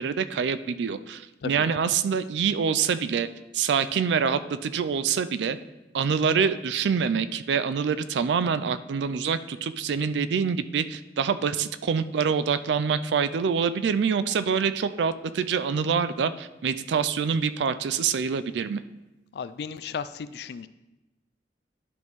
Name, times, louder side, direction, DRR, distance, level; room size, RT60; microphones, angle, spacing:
voice 1, 0.0-3.3 3.5-5.6 5.9-18.8, right 6 dB, 80° right, 13 dB, 0.4 m, -26 dB
voice 2, 19.3-20.7, left 6 dB, 65° left, 15 dB, 0.3 m, -35 dB
11.0 x 5.4 x 3.1 m, 1.0 s
head